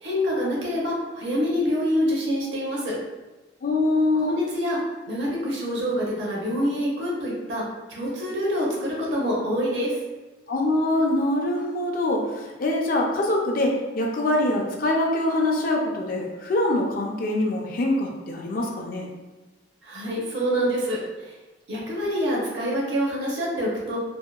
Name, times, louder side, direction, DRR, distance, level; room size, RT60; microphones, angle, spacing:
voice 1, 0.0-2.9 4.1-4.8 5.1-7.6 7.9-10.0 19.8-21.3 21.7-24.0, equal, 65° right, -4 dB, 0.7 m, -26 dB
voice 2, 3.6-4.4 10.5-19.1, left 1 dB, 50° left, 0 dB, 0.4 m, -24 dB
2.7 x 2.2 x 2.2 m, 1.1 s
head